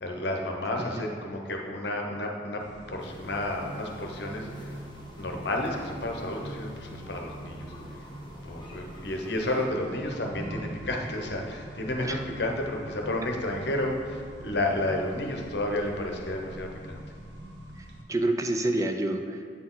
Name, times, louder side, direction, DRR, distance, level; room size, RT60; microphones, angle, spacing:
voice 1, 0.0-4.7 5.2-8.0 8.4-17.0, left 1 dB, 70° left, 2 dB, 0.9 m, -31 dB
Accelerating revving vroom, 2.6-18.0, right 1 dB, 75° right, 0.9 m, -43 dB
sound 1, 3.0-9.7, left 1 dB, 25° left, 0.8 m, -48 dB
voice 2, 17.8-19.5, right 1 dB, 20° right, 5 dB, 0.3 m, -28 dB
8.5 x 4.3 x 3.8 m, 2.1 s
head